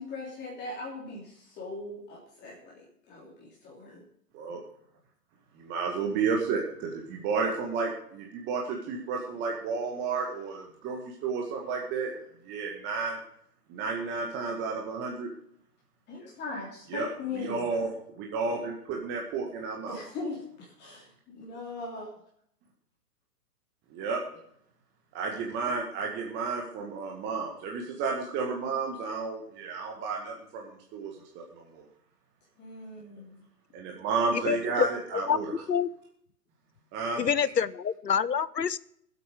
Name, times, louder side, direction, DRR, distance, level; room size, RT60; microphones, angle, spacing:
voice 1, 0.0-4.0 16.1-17.7 19.9-22.1 32.6-33.4, left 3 dB, 20° left, -4 dB, 3.3 m, -40 dB
voice 2, 5.6-12.1 12.5-13.2 13.7-15.3 16.9-17.1 17.3-17.9 18.2-20.0 23.9-24.2 25.1-31.4 31.7-31.8 33.7-35.5 36.9-37.2, right 4 dB, 20° right, 0 dB, 1.8 m, -32 dB
voice 3, 34.3-34.9 35.1-35.9 37.2-38.8, left 7 dB, 85° left, 19 dB, 0.8 m, -27 dB
19.5 x 8.4 x 5.1 m, 0.68 s
figure-of-eight pair, 115°, 48 cm